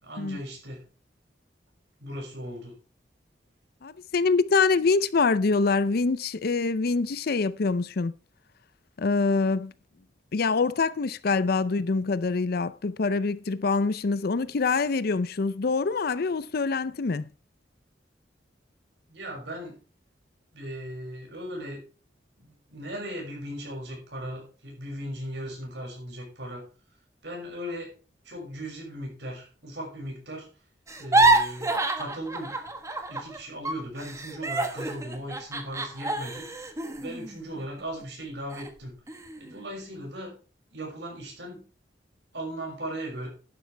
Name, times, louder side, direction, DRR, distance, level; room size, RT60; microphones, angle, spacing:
voice 1, 0.0-0.8 2.0-2.8 19.1-19.8 20.5-21.8 22.4-26.6 27.2-27.9 28.2-30.5 31.0-32.6 33.1-36.5 37.0-38.9 39.4-40.3 40.7-41.7 42.3-43.3, right 1 dB, 75° right, 6.3 m, -37 dB
voice 2, 3.8-8.1 9.0-9.7 10.3-17.3, left 4 dB, 60° left, 0.5 m, -25 dB
sound 1, 30.9-33.4 33.6-38.0 38.5-38.7 39.1-39.6, right 2 dB, 15° right, 1.3 m, -27 dB
11.5 x 10.5 x 3.4 m
head